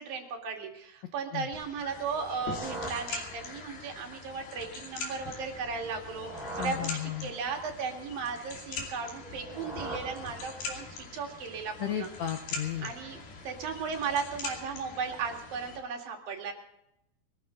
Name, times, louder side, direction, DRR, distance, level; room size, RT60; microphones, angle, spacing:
voice 1, 0.0-12.1 12.8-16.5, right 5 dB, 65° right, 2 dB, 3.8 m, -36 dB
sound 1, 1.5-15.8, left 4 dB, 70° left, 4.5 m, -42 dB
sound 2, 2.1-3.9 5.8-7.7 9.1-11.0, right 1 dB, ahead, 4.3 m, -43 dB
voice 2, 6.6-7.3 11.8-12.9, left 10 dB, 90° left, 7 dB, 1.5 m, -34 dB
22.0 x 14.0 x 3.9 m, 0.81 s
omnidirectional pair, 4.7 m